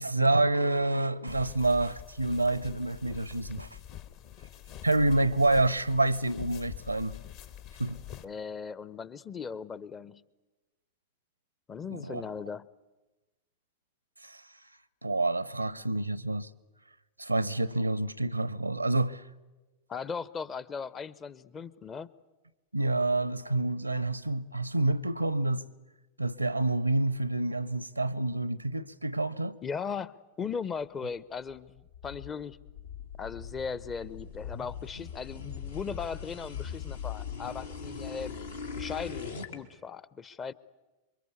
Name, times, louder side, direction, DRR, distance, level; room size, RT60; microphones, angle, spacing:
voice 1, 0.0-3.7 4.8-7.2 7.8-8.0 11.9-12.2 14.2-14.4 15.0-16.5 17.2-19.2 22.7-25.6 26.2-29.6, right 2 dB, 85° right, 0.8 m, -28 dB
sound 1, 1.3-8.2, left 11 dB, 45° left, 1.5 m, -46 dB
voice 2, 8.2-10.2 11.7-12.7 19.9-22.1 29.6-32.6 33.2-38.4 38.8-40.5, left 6 dB, 20° left, 0.8 m, -38 dB
sound 2, 31.5-39.6, left 6 dB, 75° left, 2.6 m, -40 dB
27.5 x 23.5 x 8.2 m
figure-of-eight pair, 90°, 0 cm